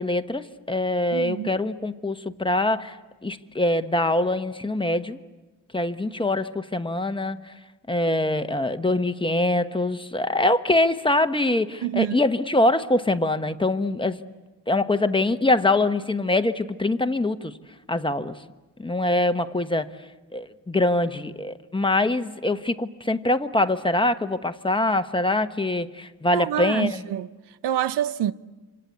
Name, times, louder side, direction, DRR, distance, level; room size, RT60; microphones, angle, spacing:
voice 1, 0.0-3.0 3.2-5.2 5.7-7.5 7.9-14.2 14.7-17.5 17.9-18.3 18.8-19.9 20.3-27.0, left 2 dB, 15° left, 1.2 m, -24 dB
voice 2, 1.1-1.6 11.8-12.2 26.3-28.3, right 11 dB, 90° right, 0.9 m, -27 dB
27.0 x 26.5 x 8.2 m
cardioid pair, 90°, 40 cm